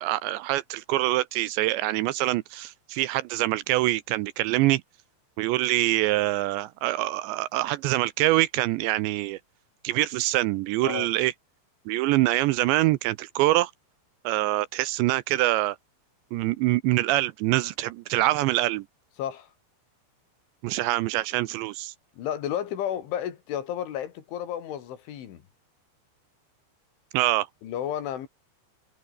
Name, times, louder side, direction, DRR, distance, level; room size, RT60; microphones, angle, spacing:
voice 1, 0.0-4.8 5.4-9.4 9.8-11.3 11.9-13.7 14.2-15.8 16.3-18.9 20.6-21.9 27.1-27.5, right 17 dB, 80° right, 2.8 m, -25 dB
voice 2, 19.2-19.5 22.1-25.4 27.6-28.3, left 10 dB, 80° left, 5.1 m, -32 dB
omnidirectional pair, 5.5 m